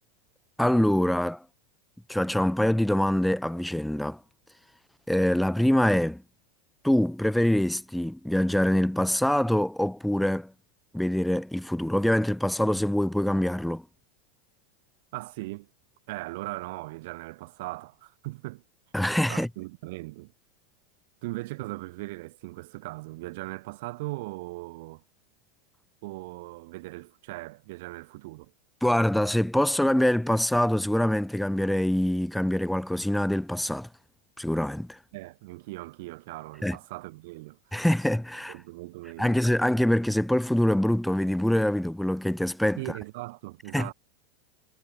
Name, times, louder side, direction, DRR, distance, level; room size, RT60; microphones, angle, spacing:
voice 1, 0.6-1.4 2.1-4.2 5.1-6.2 6.8-10.5 10.9-13.8 18.9-19.5 28.8-33.9 34.4-35.0 36.6-36.8 37.7-38.5 39.2-42.8 43.7-43.9, left 1 dB, ahead, 5.8 m, -24 dB
voice 2, 15.1-15.7 16.1-18.6 19.3-20.3 21.2-25.0 26.0-28.5 35.1-37.9 38.5-39.4 42.8-43.9, right 22 dB, 65° right, 7.3 m, -39 dB
supercardioid pair, 125°, 0 cm